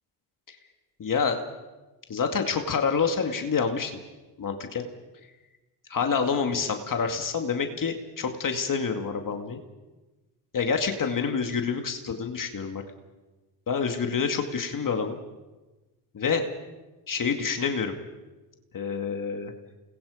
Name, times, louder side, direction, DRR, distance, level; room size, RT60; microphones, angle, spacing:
voice 1, 1.0-1.4 2.1-3.9 4.4-4.9 5.9-9.6 10.5-12.8 13.7-15.2 16.1-16.4 17.1-17.9 18.7-19.5, left 5 dB, 45° left, 5 dB, 2.3 m, -27 dB
28.5 x 21.0 x 5.1 m, 1.1 s
supercardioid pair, 70°, 45 cm